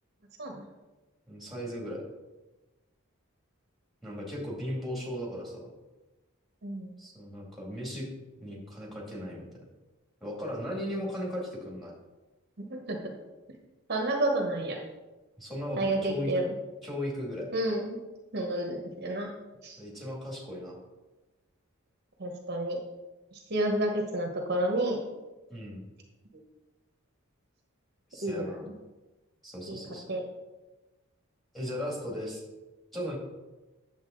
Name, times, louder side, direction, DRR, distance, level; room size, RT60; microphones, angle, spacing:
voice 1, 1.3-2.0 4.0-5.7 7.0-8.1 8.4-9.5 10.2-11.9 15.4-16.3 16.8-17.5 19.8-20.8 25.5-25.8 28.1-28.7 29.4-30.1 31.5-32.4 32.9-33.2, equal, ahead, -3 dB, 2.2 m, -37 dB
voice 2, 12.6-13.1 13.9-14.8 15.8-16.5 17.5-18.0 18.3-19.3 19.6-19.8 22.2-22.8 23.3-25.0 28.2-28.7 29.7-29.8 30.1-30.2, right 1 dB, 50° right, 2 dB, 1.0 m, -30 dB
9.4 x 7.1 x 3.8 m, 1.1 s
head